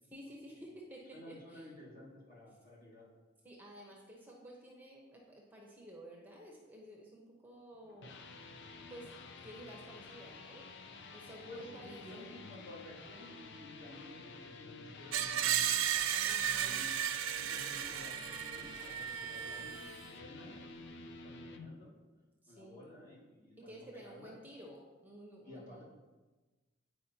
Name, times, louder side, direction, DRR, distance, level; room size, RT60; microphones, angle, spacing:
voice 1, 0.1-1.7 3.4-8.3 8.9-9.1 9.4-10.6 11.1-12.3 16.2-16.9 22.4-22.8 23.6-25.8, equal, 10° right, -2 dB, 0.8 m, -52 dB
voice 2, 1.1-3.0 11.5-15.7 16.5-17.0 17.4-21.9 22.5-24.3 25.5-25.8, left 1 dB, 45° left, -5 dB, 2.0 m, -53 dB
sound 1, 7.7-21.7, left 4 dB, 60° left, 0.5 m, -51 dB
Screech, 15.1-20.1, right 10 dB, 70° right, 0.4 m, -34 dB
9.3 x 4.8 x 2.8 m, 1.2 s
head